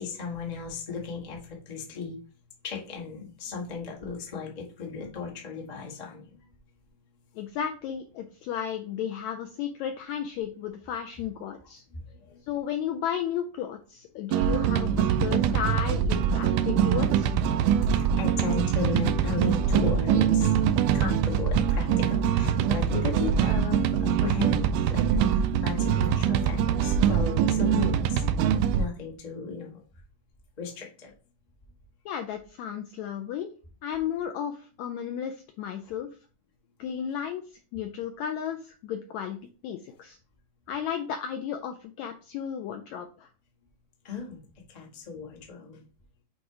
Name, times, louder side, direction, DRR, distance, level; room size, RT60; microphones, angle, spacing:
voice 1, 0.0-2.2 2.6-6.5 11.9-12.4 17.8-29.8 30.6-31.1 44.0-44.4 44.7-45.8, left 5 dB, 60° left, -2 dB, 0.4 m, -36 dB
voice 2, 7.4-11.8 12.5-17.3 32.1-33.5 33.8-36.1 36.8-37.4 37.7-39.4 39.6-40.2 40.7-43.3, left 9 dB, 85° left, 6 dB, 1.6 m, -33 dB
sound 1, 14.3-28.9, right 8 dB, 80° right, 2.0 m, -24 dB
8.0 x 2.9 x 4.7 m, 0.37 s
omnidirectional pair, 3.9 m